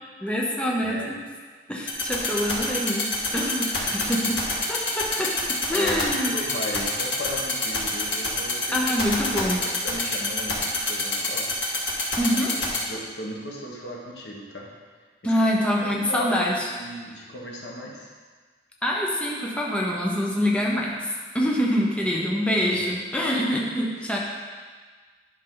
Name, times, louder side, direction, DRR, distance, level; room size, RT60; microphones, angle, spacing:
voice 1, 0.2-1.2 1.7-4.4 4.7-6.3 8.7-9.7 12.2-12.6 15.2-16.7 18.8-21.1 21.3-24.2, equal, 5° left, -3 dB, 0.9 m, -25 dB
voice 2, 0.8-1.2 3.8-4.3 5.7-8.9 9.4-14.7 15.2-15.3 15.9-18.1 22.6-22.9 23.8-24.0, equal, 70° left, -2 dB, 1.5 m, -37 dB
sound 1, 1.9-12.8, left 4 dB, 90° left, 1.9 m, -25 dB
10.5 x 5.5 x 3.9 m, 1.5 s
head